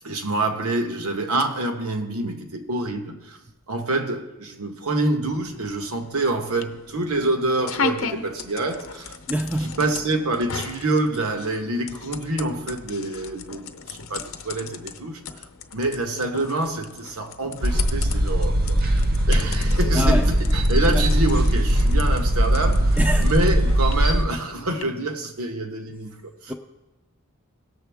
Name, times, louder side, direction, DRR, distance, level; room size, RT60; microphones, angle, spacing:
voice 1, 0.0-3.4 3.7-9.2 9.6-15.4 15.7-18.8 19.3-26.5, right 2 dB, 80° right, 1.2 m, -26 dB
sound 1, 5.3-24.8, left 5 dB, 65° left, 0.7 m, -37 dB
voice 2, 9.3-9.8 19.9-20.3 20.9-21.0 23.0-23.3 26.5-26.6, equal, 5° right, 0.4 m, -25 dB
sound 2, 17.6-24.2, equal, 40° right, 0.7 m, -20 dB
18.0 x 7.0 x 3.5 m
head